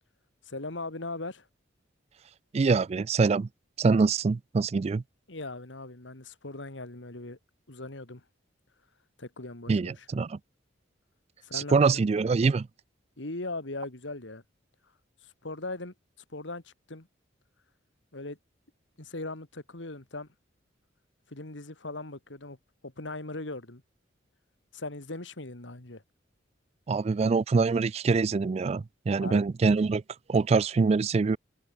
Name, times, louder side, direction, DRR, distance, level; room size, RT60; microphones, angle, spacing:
voice 1, 0.5-1.4 5.3-7.4 7.7-8.2 9.2-10.1 11.4-12.0 13.2-14.4 15.4-15.9 16.3-17.1 18.1-18.4 19.0-20.3 21.3-22.6 22.8-23.8 24.7-26.0 29.2-29.4, left 2 dB, 75° left, 2.5 m, -39 dB
voice 2, 2.5-3.5 3.8-5.0 9.7-10.4 11.5-12.7 26.9-30.0 30.3-31.4, right 4 dB, 35° right, 0.3 m, -24 dB
open air
head